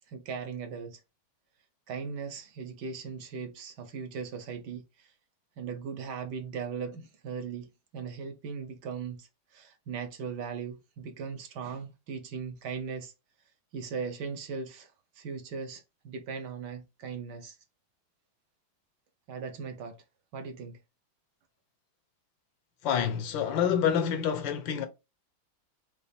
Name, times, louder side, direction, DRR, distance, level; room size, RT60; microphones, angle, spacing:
voice 1, 0.1-1.0 1.9-5.1 5.6-13.1 13.7-17.6 19.3-20.0 20.3-20.8, right 5 dB, 70° right, 1.3 m, -38 dB
voice 2, 22.8-24.9, left 8 dB, 80° left, 1.5 m, -27 dB
5.4 x 2.5 x 3.3 m
omnidirectional pair, 2.1 m